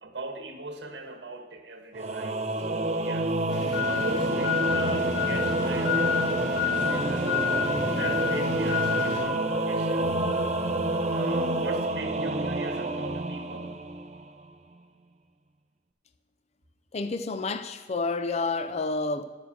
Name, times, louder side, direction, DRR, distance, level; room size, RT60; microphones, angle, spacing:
voice 1, 0.0-3.3 3.7-7.3 7.9-10.3 11.1-13.7, right 2 dB, 80° right, 1.7 m, -38 dB
Singing / Musical instrument, 1.9-14.4, right 2 dB, 40° right, 0.7 m, -28 dB
sound 1, 2.1-13.0, equal, 15° right, 1.2 m, -38 dB
sound 2, 3.5-9.2, left 6 dB, 65° left, 3.5 m, -29 dB
voice 2, 16.9-19.2, left 3 dB, 40° left, 0.5 m, -29 dB
9.5 x 7.0 x 7.6 m
head